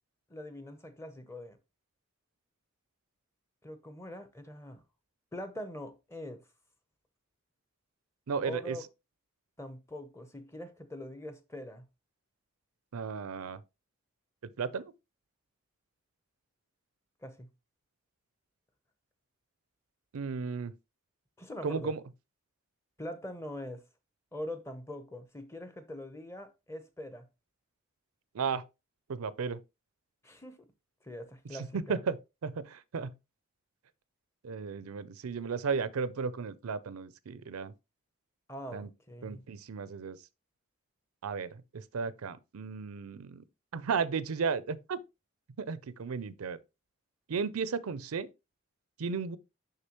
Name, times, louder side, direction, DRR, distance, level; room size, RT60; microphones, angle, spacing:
voice 1, 0.3-1.6 3.6-4.8 5.3-6.4 8.4-8.8 9.6-11.9 17.2-17.5 21.4-22.0 23.0-23.8 24.3-27.3 30.2-30.7 31.0-32.0 38.5-39.4, left 1 dB, 10° left, 0.7 m, -43 dB
voice 2, 8.3-8.8 12.9-13.6 14.6-14.8 20.1-20.7 21.6-22.0 28.3-28.6 29.1-29.6 31.7-32.2 32.4-33.1 34.4-37.7 38.7-38.9 39.2-40.2 41.2-43.4 43.7-45.0 45.6-46.6 47.3-48.3 49.0-49.4, right 5 dB, 90° right, 0.5 m, -34 dB
6.6 x 5.8 x 3.0 m
head